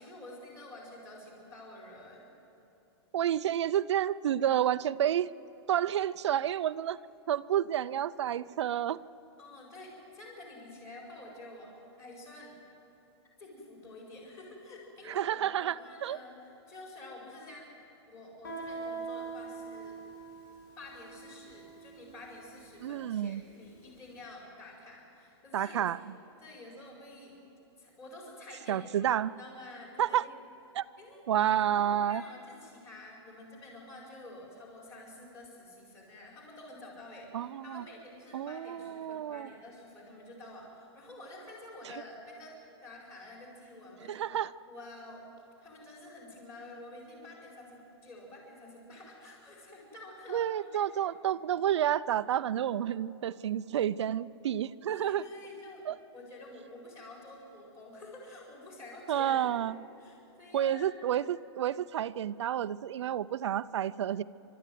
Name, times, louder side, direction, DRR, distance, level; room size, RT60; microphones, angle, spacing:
voice 1, 0.0-2.2 9.4-12.6 13.4-17.7 18.1-20.0 20.8-25.9 26.4-27.4 27.8-30.3 31.0-31.2 31.5-44.2 44.7-45.3 45.6-50.8 54.9-59.4 60.0-60.9, left 2 dB, 20° left, -3 dB, 4.8 m, -49 dB
voice 2, 3.1-5.3 5.7-7.0 7.3-9.0 15.1-16.2 22.8-23.4 25.5-26.0 28.7-29.3 30.0-30.2 30.7-30.9 31.3-32.2 37.3-37.8 38.3-39.5 44.1-44.5 50.3-55.2 55.9-56.0 59.1-59.7 60.5-64.2, right 10 dB, 90° right, 13 dB, 0.6 m, -30 dB
Guitar, 18.4-23.9, right 4 dB, 50° left, 6.8 m, -43 dB
29.0 x 13.0 x 9.3 m, 2.8 s
supercardioid pair, 175°, 14 cm